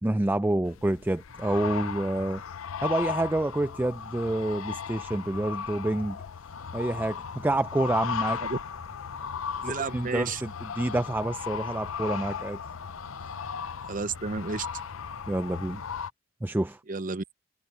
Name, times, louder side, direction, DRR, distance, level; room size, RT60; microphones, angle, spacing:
voice 1, 0.0-2.4 2.8-6.2 6.7-8.4 9.6-12.6 15.3-15.8 16.4-16.8, right 1 dB, 10° right, 0.3 m, -28 dB
sound 1, 0.6-16.1, left 7 dB, 65° left, 0.5 m, -36 dB
sound 2, 6.5-16.0, left 2 dB, 90° left, 3.6 m, -49 dB
voice 2, 9.6-10.4 13.9-14.7 16.9-17.2, right 4 dB, 40° right, 0.7 m, -31 dB
head